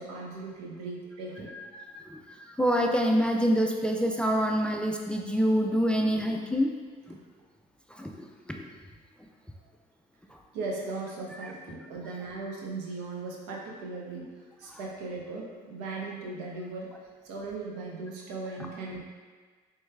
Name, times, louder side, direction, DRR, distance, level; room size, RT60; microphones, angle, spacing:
voice 1, 0.0-1.5 9.6-9.7 10.5-16.9 17.2-19.0, right 3 dB, 85° right, -2 dB, 0.8 m, -38 dB
voice 2, 1.5-2.2 2.6-6.7 7.1-7.2 7.9-8.7 14.7-14.8 18.6-18.7, equal, 5° left, 2 dB, 0.3 m, -27 dB
4.5 x 3.1 x 2.3 m, 1.5 s
supercardioid pair, 80°, 19 cm